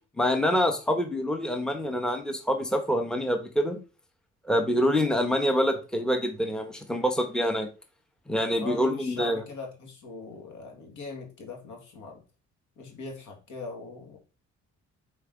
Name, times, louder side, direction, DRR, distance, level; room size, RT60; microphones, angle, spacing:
voice 1, 0.2-3.8 4.5-7.7 8.3-9.4, equal, ahead, 1.1 m, -26 dB
voice 2, 8.6-12.2 12.8-14.2, left 4 dB, 75° left, 2.2 m, -40 dB
5.5 x 4.3 x 3.9 m
cardioid pair, 90°, 30 cm